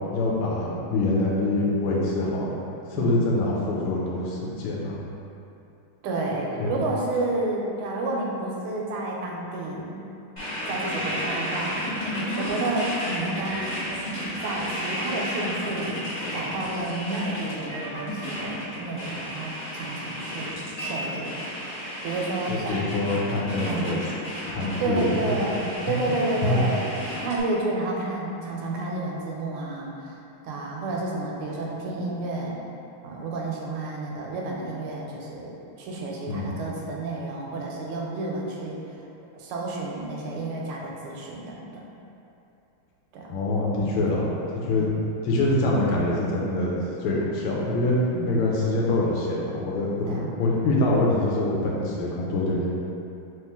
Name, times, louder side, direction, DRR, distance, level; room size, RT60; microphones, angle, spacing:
voice 1, 0.1-2.6 2.9-5.0 6.6-6.7 22.5-23.9 24.5-25.4 26.4-26.6 36.3-36.6 43.3-44.9 45.2-48.0 48.2-52.8, left 2 dB, 85° left, -4 dB, 1.6 m, -25 dB
voice 2, 6.0-10.0 10.6-11.8 12.4-13.6 14.4-16.0 16.3-21.4 22.0-22.9 23.6-24.1 24.8-30.2 30.4-32.6 33.0-38.8 39.4-41.9 43.1-43.4 43.8-44.0 44.7-44.9 48.1-48.4 50.0-50.4, right 2 dB, 85° right, -2 dB, 1.5 m, -30 dB
sound 1, 10.4-27.4, equal, 40° left, 0.6 m, -32 dB
3.6 x 3.1 x 3.5 m, 2.7 s
omnidirectional pair, 2.4 m